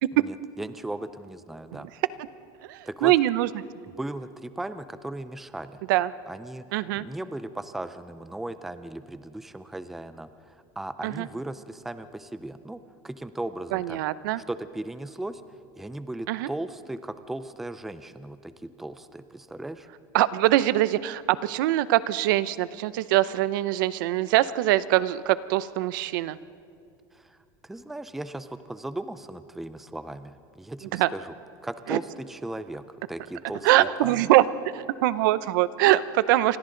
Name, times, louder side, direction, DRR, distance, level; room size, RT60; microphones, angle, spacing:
voice 1, 0.1-1.9 2.9-3.1 4.0-5.8 6.3-6.6 6.9-14.0 14.5-15.4 15.8-19.9 27.1-27.4 27.6-31.3 31.6-34.3, right 1 dB, ahead, 11 dB, 0.4 m, -37 dB
voice 2, 2.7-3.5 5.9-6.1 6.7-7.1 11.0-11.3 13.7-14.4 16.3-16.5 20.1-26.4 30.9-31.1 31.9-32.0 33.6-34.4 34.7-36.6, right 15 dB, 75° right, 16 dB, 0.7 m, -23 dB
28.0 x 25.0 x 3.9 m, 2.4 s
cardioid pair, 180°, 11 cm